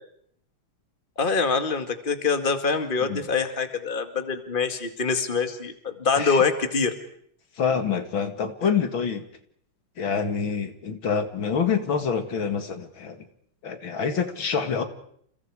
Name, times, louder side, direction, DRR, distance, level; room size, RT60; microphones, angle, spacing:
voice 1, 1.2-7.0, left 5 dB, 25° left, 7 dB, 2.2 m, -25 dB
voice 2, 7.6-9.2 10.0-13.2 13.6-14.8, left 6 dB, 70° left, 7 dB, 2.8 m, -26 dB
30.0 x 29.5 x 4.9 m, 0.67 s
omnidirectional pair, 2.2 m